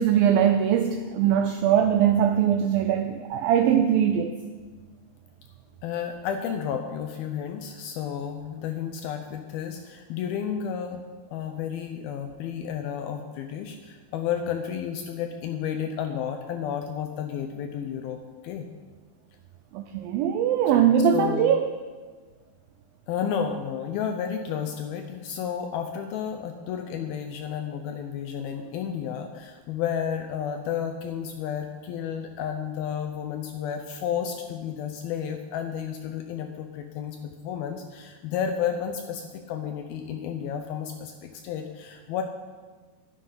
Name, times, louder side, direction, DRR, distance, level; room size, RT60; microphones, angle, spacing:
voice 1, 0.0-4.4 19.7-21.7, right 9 dB, 90° right, 7 dB, 2.0 m, -21 dB
voice 2, 5.8-11.0 11.3-18.2 18.4-18.7 20.7-21.7 23.1-42.2, left 8 dB, 80° left, 5 dB, 2.3 m, -32 dB
11.5 x 10.0 x 5.6 m, 1.4 s
omnidirectional pair, 4.8 m